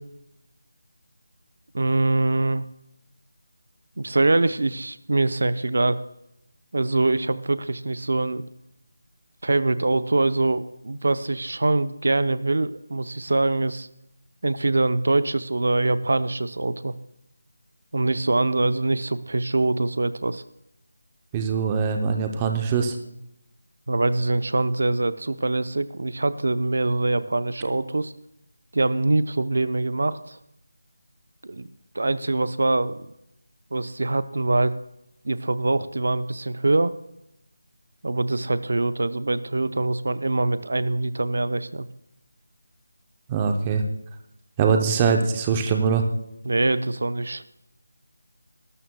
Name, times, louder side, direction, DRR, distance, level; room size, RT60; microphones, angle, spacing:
voice 1, 1.7-2.7 4.0-6.0 6.7-8.4 9.4-13.9 14.4-16.9 17.9-20.4 23.9-28.1 28.7-30.4 31.4-31.7 31.9-33.0 33.7-34.8 35.2-37.0 38.0-41.9 46.5-47.4, right 2 dB, 60° right, 13 dB, 0.6 m, -23 dB
voice 2, 21.3-23.0 43.3-43.8 44.6-46.0, right 6 dB, 10° right, 4 dB, 0.6 m, -22 dB
19.5 x 12.5 x 2.2 m, 0.82 s
figure-of-eight pair, 175°, 0 cm